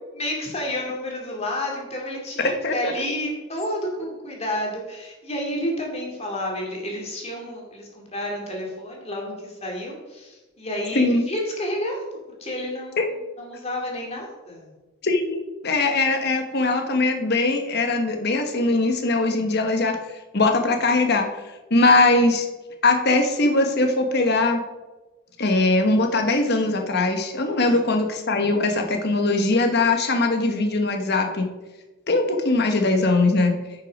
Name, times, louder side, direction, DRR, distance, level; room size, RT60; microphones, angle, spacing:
voice 1, 0.1-12.0 12.4-14.7 27.6-27.8, left 1 dB, 30° left, -1 dB, 2.6 m, -30 dB
voice 2, 2.4-2.9 10.9-11.2 13.0-13.1 15.0-20.0 20.3-21.3 21.7-22.5 22.8-24.6 25.4-31.5 32.1-33.5, left 2 dB, 50° left, 4 dB, 1.3 m, -21 dB
10.0 x 6.5 x 5.3 m, 1.2 s
head